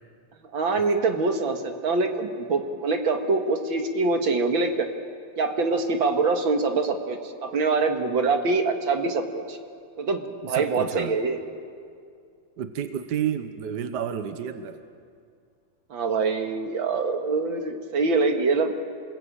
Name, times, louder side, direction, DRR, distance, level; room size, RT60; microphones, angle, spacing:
voice 1, 0.5-4.9 5.4-9.6 10.0-11.4 15.9-18.7, right 3 dB, 85° right, 5 dB, 2.5 m, -24 dB
voice 2, 10.4-11.2 12.6-14.8, right 8 dB, 60° right, 9 dB, 1.6 m, -31 dB
28.5 x 21.0 x 8.8 m, 2.3 s
omnidirectional pair, 2.1 m